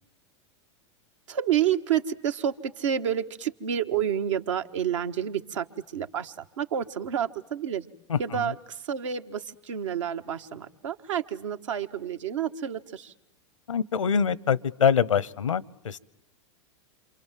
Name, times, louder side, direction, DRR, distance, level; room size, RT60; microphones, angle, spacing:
voice 1, 1.3-5.7 5.9-7.9 8.2-13.1, right 9 dB, 75° right, 6 dB, 1.5 m, -29 dB
voice 2, 8.1-8.5 13.7-16.0, left 7 dB, 90° left, 23 dB, 1.0 m, -25 dB
28.0 x 27.0 x 7.6 m, 0.79 s
hypercardioid pair, 105°, 16 cm